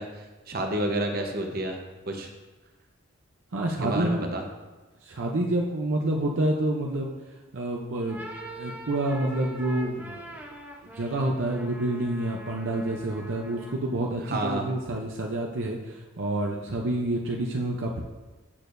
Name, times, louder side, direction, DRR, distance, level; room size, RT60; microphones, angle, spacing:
voice 1, 0.0-2.3 3.7-4.4 14.2-14.6, right 1 dB, 50° right, 2 dB, 0.9 m, -30 dB
voice 2, 3.5-4.3 5.0-7.1 7.5-10.2 11.0-18.0, right 1 dB, 70° right, 0 dB, 0.7 m, -28 dB
sound 1, 7.9-14.0, equal, 10° right, 0.7 m, -43 dB
8.6 x 6.5 x 2.6 m, 1.2 s
head